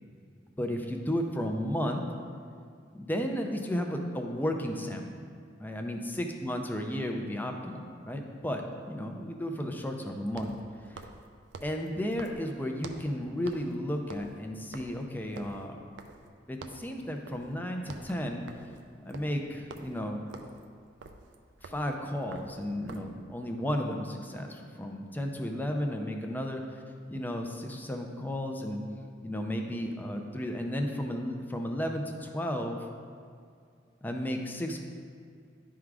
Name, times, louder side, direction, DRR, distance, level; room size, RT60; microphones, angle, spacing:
voice 1, 0.6-2.0 2.9-5.1 5.6-10.5 10.9-11.1 11.6-15.8 16.5-18.4 19.0-20.2 21.6-26.6 27.1-28.8 29.2-32.9 34.0-34.8, equal, 10° left, 3 dB, 0.5 m, -33 dB
sound 1, 10.3-13.2 13.5-13.8 14.0-16.3 16.6-16.9 17.3-17.5 17.8-23.2, right 3 dB, 75° right, 0.5 m, -48 dB
10.5 x 3.7 x 4.7 m, 2.2 s
head